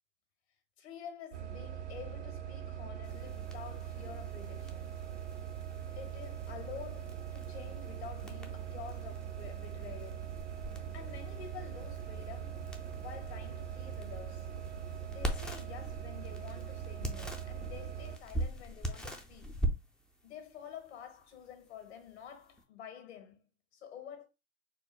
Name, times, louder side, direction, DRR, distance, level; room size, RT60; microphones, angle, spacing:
voice 1, 0.8-5.0 5.9-10.4 10.7-14.5 15.1-19.5 20.2-23.4 23.7-24.2, left 8 dB, 70° left, 1.6 m, -49 dB
sound 1, 1.3-18.2, right 10 dB, 80° right, 0.7 m, -42 dB
sound 2, 3.0-22.6, right 1 dB, 5° left, 0.3 m, -43 dB
4.4 x 2.0 x 4.4 m
hypercardioid pair, 115°, 34 cm